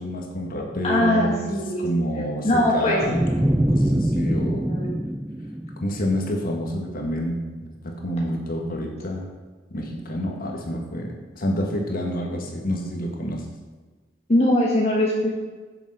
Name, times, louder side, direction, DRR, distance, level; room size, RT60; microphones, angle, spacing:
voice 1, 0.0-1.5 1.8-4.6 5.8-9.3 9.7-13.4, equal, 50° left, 1 dB, 1.7 m, -28 dB
voice 2, 0.8-1.9 2.4-3.1 4.3-4.9 14.3-15.3, left 1 dB, 35° left, -3 dB, 1.3 m, -21 dB
sound 1, 3.0-6.3, right 1 dB, 5° right, 0.4 m, -24 dB
7.8 x 6.8 x 5.6 m, 1.3 s
head